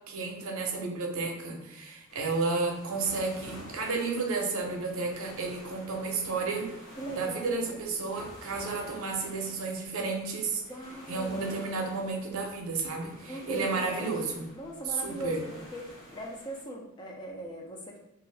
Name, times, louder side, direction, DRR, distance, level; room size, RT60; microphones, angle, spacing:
voice 1, 0.1-6.9 7.1-10.6 11.1-14.4 14.9-15.4, right 4 dB, 70° right, 1 dB, 0.6 m, -32 dB
sound 1, 2.1-16.6, equal, 55° left, 0.8 m, -50 dB
voice 2, 7.0-8.0 10.6-11.6 13.3-18.0, right 1 dB, 20° left, -1 dB, 0.4 m, -40 dB
2.6 x 2.3 x 3.2 m, 0.90 s
head